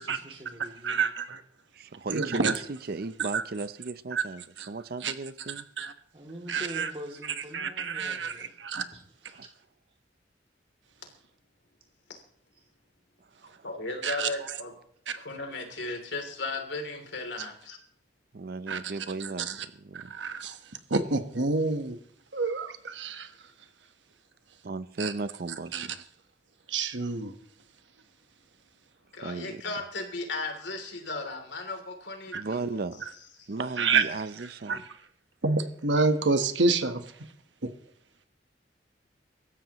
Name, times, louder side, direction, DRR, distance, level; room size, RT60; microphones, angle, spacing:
voice 1, 0.0-1.0 6.1-8.5 8.9-9.0 9.3-9.4 33.9-34.2, right 1 dB, 30° right, 1 dB, 2.7 m, -44 dB
voice 2, 0.8-1.4 2.1-2.5 3.3-3.4 4.1-4.2 4.6-4.7 5.0-5.1 5.8-5.9 6.5-6.9 7.5-8.9 14.0-14.3 15.1-15.2 18.7-18.9 19.5-19.6 19.9-20.6 20.9-22.0 22.3-23.3 25.0-25.1 25.7-25.9 26.7-27.3 32.3-32.4 33.8-34.0 34.7-34.8 35.4-37.0 37.6-37.7, right 4 dB, 80° right, 8 dB, 1.2 m, -28 dB
voice 3, 1.7-5.6 9.3-9.4 13.5-13.6 18.3-20.1 24.6-26.0 29.2-29.6 32.3-33.1 33.5-34.8, right 3 dB, 55° right, 14 dB, 0.5 m, -36 dB
voice 4, 13.6-14.7 15.2-17.8 29.1-32.6 33.4-33.5, left 3 dB, 80° left, 4 dB, 3.1 m, -36 dB
24.5 x 13.5 x 3.0 m, 0.65 s
head